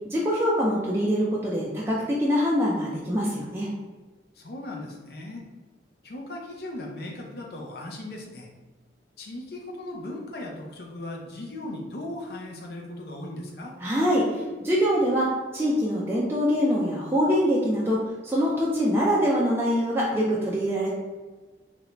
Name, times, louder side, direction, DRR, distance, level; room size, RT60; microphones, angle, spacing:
voice 1, 0.1-3.7 13.8-20.9, equal, 15° right, -6 dB, 0.4 m, -24 dB
voice 2, 4.4-5.4 6.0-8.5 9.2-13.7, left 1 dB, 60° left, 0 dB, 0.6 m, -37 dB
3.2 x 2.5 x 3.0 m, 1.3 s
head